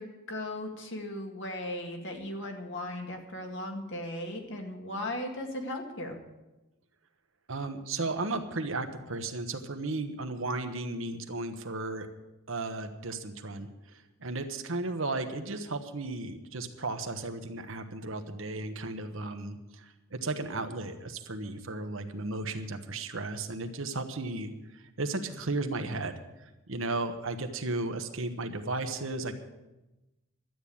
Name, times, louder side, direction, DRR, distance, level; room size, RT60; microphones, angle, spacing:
voice 1, 0.0-6.2, left 1 dB, 60° left, 2 dB, 2.2 m, -37 dB
voice 2, 7.5-12.1 12.5-29.3, right 2 dB, 65° right, 7 dB, 1.2 m, -35 dB
12.5 x 9.0 x 8.5 m, 1.0 s
head